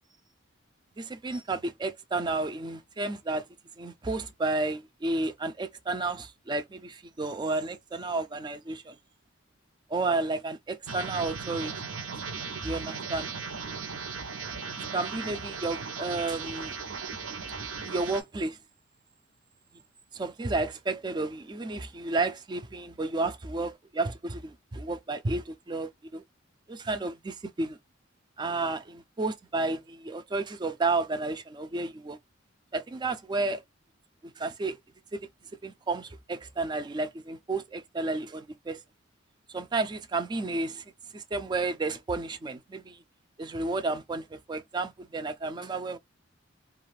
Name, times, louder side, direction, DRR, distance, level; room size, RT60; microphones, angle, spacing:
voice 1, 1.0-3.5 3.8-9.0 9.9-11.7 12.6-13.3 14.9-16.8 17.8-18.6 20.1-26.2 26.7-27.8 28.4-32.2 32.7-33.6 34.2-34.8 35.1-35.3 35.6-38.8 39.5-40.8 41.1-43.0 43.4-46.0, right 3 dB, 20° right, 0.3 m, -32 dB
sound 1, 10.9-18.2, right 5 dB, 80° right, 0.7 m, -37 dB
2.4 x 2.4 x 3.2 m
head